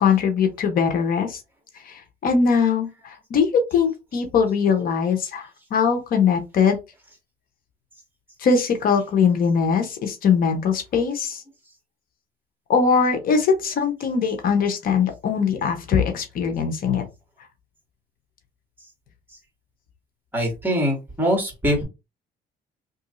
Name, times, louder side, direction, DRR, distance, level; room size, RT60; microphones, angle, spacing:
voice 1, 0.0-1.4 1.7-6.8 8.4-11.4 12.7-17.1, left 6 dB, 60° left, 5 dB, 0.9 m, -21 dB
voice 2, 20.3-21.8, equal, 10° right, 2 dB, 1.9 m, -23 dB
3.0 x 2.6 x 3.8 m, 0.25 s
cardioid pair, 110°, 17 cm